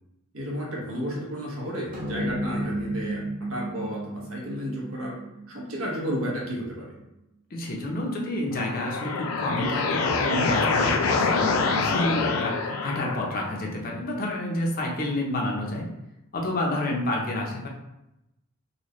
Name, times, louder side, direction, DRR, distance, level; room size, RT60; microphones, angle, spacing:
voice 1, 0.3-5.2 5.5-6.9, equal, 80° right, -3 dB, 1.0 m, -32 dB
sound 1, 1.9-6.5, right 1 dB, 40° right, 0.9 m, -33 dB
voice 2, 7.5-15.9 16.3-17.7, left 1 dB, 45° left, -1 dB, 0.6 m, -29 dB
sound 2, 8.5-13.5, left 4 dB, 85° left, 0.4 m, -25 dB
4.0 x 2.2 x 3.0 m, 0.90 s
head